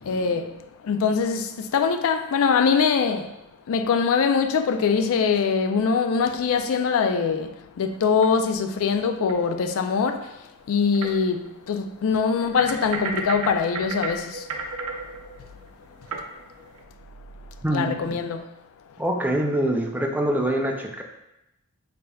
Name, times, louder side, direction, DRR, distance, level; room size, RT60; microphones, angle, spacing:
voice 1, 0.1-0.4 0.9-1.5 1.7-3.3 3.7-7.5 7.8-10.2 10.7-14.3 17.7-18.4, left 5 dB, 70° left, 0.4 m, -22 dB
sound 1, 7.9-8.6 9.3-9.4 10.2-10.3 10.9-11.1 11.5-11.6 12.3-16.8, right 4 dB, 85° right, 0.5 m, -33 dB
voice 2, 17.6-18.2 19.0-21.0, right 1 dB, 10° right, 0.4 m, -25 dB
5.1 x 3.3 x 2.3 m
head